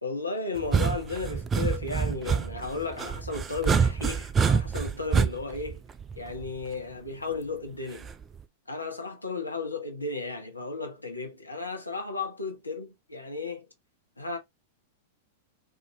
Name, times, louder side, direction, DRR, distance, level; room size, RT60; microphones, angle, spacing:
voice 1, 0.0-5.8 6.2-8.1 8.7-13.7 14.2-14.4, left 3 dB, 90° left, 0.8 m, -34 dB
sound 1, 0.6-6.6 8.0-8.4, right 6 dB, 20° right, 0.4 m, -27 dB
3.4 x 2.6 x 2.8 m
figure-of-eight pair, 95°, 0 cm